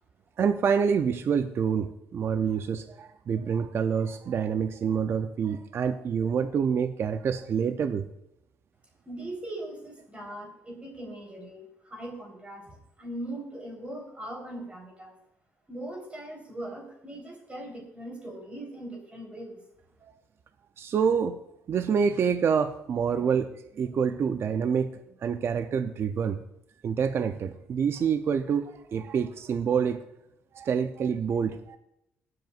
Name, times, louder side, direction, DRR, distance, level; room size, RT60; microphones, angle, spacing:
voice 1, 0.4-8.0 20.0-20.1 20.8-21.4 21.7-26.4 26.8-30.0 30.5-31.8, right 7 dB, 55° right, 9 dB, 0.5 m, -27 dB
voice 2, 9.0-15.1 15.7-19.6, right 1 dB, 25° right, 1 dB, 3.8 m, -40 dB
21.5 x 7.8 x 2.5 m, 0.81 s
cardioid pair, 90°, 5 cm